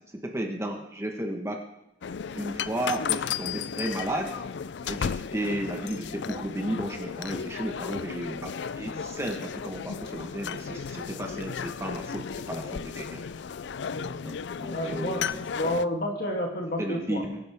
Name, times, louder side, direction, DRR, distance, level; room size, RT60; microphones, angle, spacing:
voice 1, 0.1-1.6 2.3-4.3 4.8-13.2 14.2-15.5 16.8-17.4, right 1 dB, 15° right, 3 dB, 1.3 m, -33 dB
sound 1, 2.0-15.8, left 7 dB, 70° left, 0.4 m, -34 dB
voice 2, 14.7-15.3 15.5-17.2, left 1 dB, 55° left, 0 dB, 2.8 m, -30 dB
22.0 x 11.0 x 3.6 m, 0.84 s
head